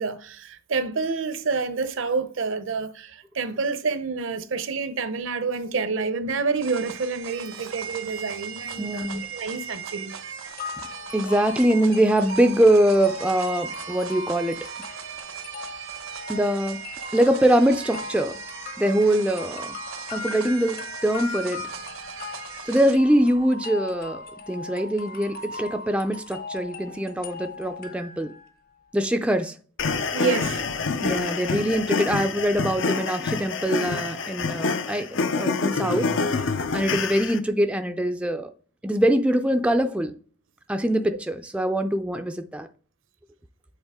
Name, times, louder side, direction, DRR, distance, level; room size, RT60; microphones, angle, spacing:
voice 1, 0.0-10.1 30.1-30.6, right 4 dB, 70° right, 0.7 m, -28 dB
sound 1, 6.6-22.9, right 7 dB, 90° right, 1.0 m, -38 dB
voice 2, 8.8-9.2 11.1-14.6 16.3-16.8 17.1-18.4 18.8-19.8 20.1-21.6 22.7-28.3 28.9-29.6 31.0-36.1 36.7-38.5 38.8-40.1 40.7-42.7, right 1 dB, 5° right, 0.4 m, -23 dB
sound 2, 10.6-28.5, left 3 dB, 50° left, 1.0 m, -39 dB
sound 3, 29.8-37.4, left 4 dB, 65° left, 0.6 m, -27 dB
8.0 x 4.0 x 3.6 m
head